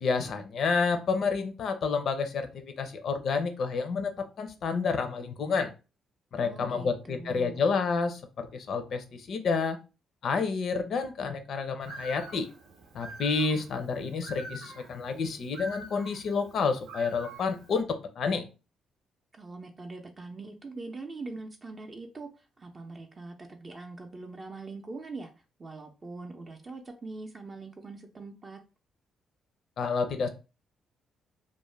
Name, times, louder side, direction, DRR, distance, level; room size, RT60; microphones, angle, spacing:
voice 1, 0.0-5.7 6.3-9.8 10.2-12.5 12.9-18.5 29.8-30.3, left 5 dB, 65° left, 8 dB, 0.5 m, -29 dB
voice 2, 6.4-7.6 19.3-25.3 25.6-28.6, right 3 dB, 35° right, 3 dB, 0.4 m, -42 dB
Bird, 11.8-17.8, right 1 dB, 90° right, 0.6 m, -46 dB
2.4 x 2.1 x 3.1 m, 0.31 s
cardioid pair, 90°, 0 cm